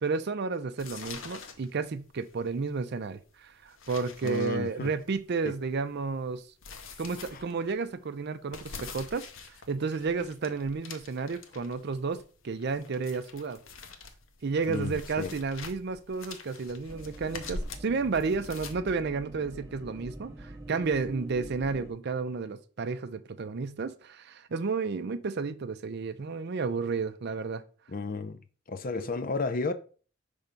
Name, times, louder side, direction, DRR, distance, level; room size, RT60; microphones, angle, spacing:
voice 1, 0.0-6.4 7.0-13.6 14.4-27.6 29.0-29.1, right 4 dB, 55° right, 0.5 m, -32 dB
sound 1, 0.8-18.7, left 4 dB, 70° left, 0.9 m, -45 dB
voice 2, 4.2-4.9 5.4-5.5 14.7-15.3 27.9-28.4 28.7-29.7, left 3 dB, 45° left, 0.5 m, -32 dB
sound 2, 16.9-21.9, right 2 dB, 15° right, 0.7 m, -44 dB
5.5 x 3.5 x 5.2 m
head